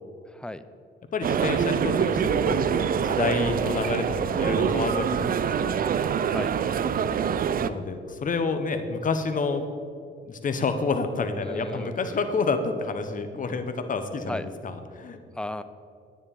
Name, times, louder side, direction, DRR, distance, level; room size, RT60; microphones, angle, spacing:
voice 1, 0.3-0.7 6.2-6.5 11.4-12.3 14.3-14.5 15.3-15.6, left 1 dB, 5° left, 12 dB, 0.5 m, -36 dB
voice 2, 1.1-5.8 6.9-7.0 7.6-9.6 10.3-15.2, left 4 dB, 40° left, 8 dB, 1.2 m, -29 dB
sound 1, 1.2-7.7, right 7 dB, 45° right, 0.5 m, -25 dB
10.0 x 9.3 x 5.4 m, 2.3 s
cardioid pair, 90°, 20 cm